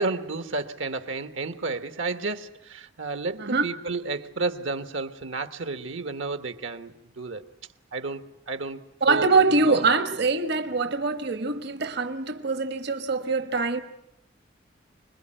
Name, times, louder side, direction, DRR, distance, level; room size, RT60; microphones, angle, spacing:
voice 1, 0.0-7.5 7.9-9.8, right 3 dB, 75° right, 1.4 m, -32 dB
voice 2, 9.0-13.8, right 3 dB, 60° right, 1.2 m, -23 dB
26.0 x 21.5 x 8.9 m
head